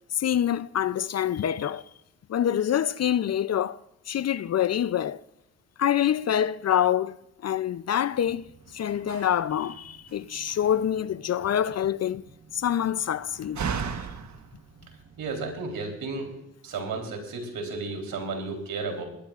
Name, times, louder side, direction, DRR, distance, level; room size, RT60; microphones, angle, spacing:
voice 1, 0.1-1.8 2.3-3.8 4.1-5.2 5.8-7.2 7.4-8.5 8.7-12.2 12.5-13.6, left 10 dB, 50° left, 0.5 m, -26 dB
Slam, 8.1-15.7, right 6 dB, 55° right, 1.2 m, -39 dB
voice 2, 15.2-16.3 16.6-19.0, right 3 dB, 80° right, 3.7 m, -33 dB
20.5 x 18.0 x 2.5 m
supercardioid pair, 60°, 34 cm